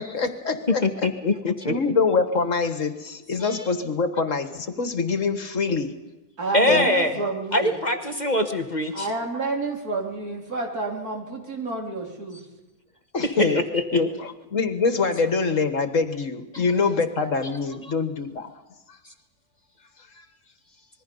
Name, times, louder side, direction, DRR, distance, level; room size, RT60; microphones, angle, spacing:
voice 1, 0.0-0.8 1.7-5.9 6.7-6.9 13.1-13.6 13.9-18.5, left 4 dB, 60° left, 9 dB, 1.8 m, -24 dB
voice 2, 0.8-1.7 6.5-7.1 7.5-9.1 13.2-13.8 16.5-16.6, left 1 dB, 30° left, 6 dB, 1.2 m, -23 dB
voice 3, 6.4-7.8 8.9-12.4, right 3 dB, 80° right, 0 dB, 4.1 m, -29 dB
26.5 x 21.5 x 5.4 m, 1.0 s
omnidirectional pair, 1.6 m